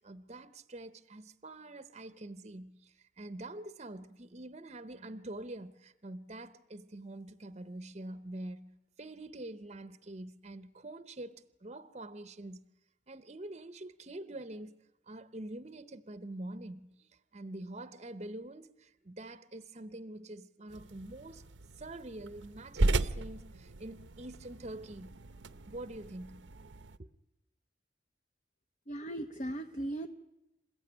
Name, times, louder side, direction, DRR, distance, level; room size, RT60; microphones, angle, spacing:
voice 1, 0.0-12.6 13.1-14.8 15.1-21.4 21.8-25.1 25.7-26.5 27.0-27.1, right 1 dB, 35° right, 0.8 m, -45 dB
sound 1, 20.7-27.0, right 2 dB, 80° right, 0.8 m, -36 dB
voice 2, 28.9-30.1, right 1 dB, 40° left, 0.9 m, -37 dB
27.5 x 15.5 x 9.8 m
head